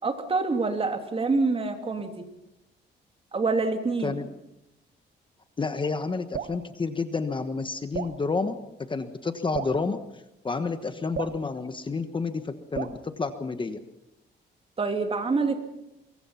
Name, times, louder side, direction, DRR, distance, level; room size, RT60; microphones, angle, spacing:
voice 1, 0.0-2.2 3.3-4.2 14.8-15.5, right 3 dB, 30° right, 5 dB, 3.0 m, -26 dB
voice 2, 5.6-8.6 8.9-10.0 10.4-13.8, left 4 dB, 25° left, 9 dB, 1.3 m, -30 dB
Drip, 6.3-6.6 7.9-8.2 9.5-9.8 11.1-11.4 12.7-13.0, right 7 dB, 55° right, 1.3 m, -33 dB
24.0 x 22.5 x 5.8 m, 0.92 s
cardioid pair, 115°, 19 cm